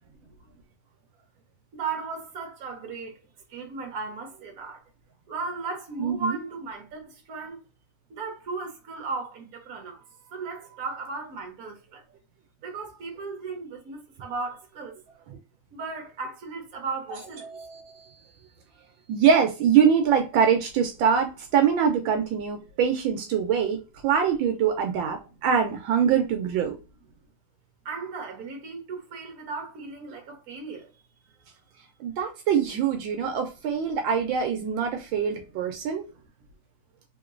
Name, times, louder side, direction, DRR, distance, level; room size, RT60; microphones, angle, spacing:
voice 1, 0.2-0.6 1.7-4.8 5.3-7.6 8.1-12.0 12.6-15.0 15.7-17.5 25.3-25.4 27.8-30.9 33.1-33.2, right 4 dB, 50° right, 1.4 m, -36 dB
voice 2, 6.0-6.4 17.4-18.1 19.1-26.7 32.0-36.0, right 7 dB, 80° right, 1.4 m, -24 dB
3.7 x 2.9 x 2.5 m
omnidirectional pair, 2.2 m